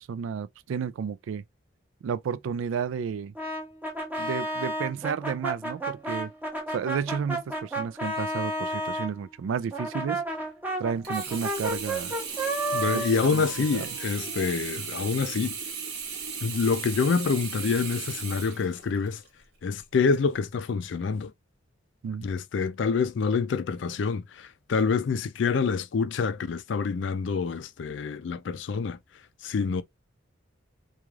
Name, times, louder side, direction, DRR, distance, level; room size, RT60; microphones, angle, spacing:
voice 1, 0.0-1.4 2.0-3.3 4.2-6.3 6.7-10.2 10.8-12.1 12.8-13.4 13.7-13.9 22.0-22.3, right 7 dB, 75° right, 0.3 m, -32 dB
Brass instrument, 3.3-9.1 9.7-14.5, right 1 dB, 10° right, 0.9 m, -32 dB
Sink (filling or washing), 11.0-19.3 19.8-19.9, right 6 dB, 55° right, 0.9 m, -36 dB
voice 2, 12.7-15.5 16.4-19.2 19.6-21.3 22.2-29.0 29.4-29.8, left 5 dB, 65° left, 0.4 m, -27 dB
3.1 x 2.3 x 2.3 m
head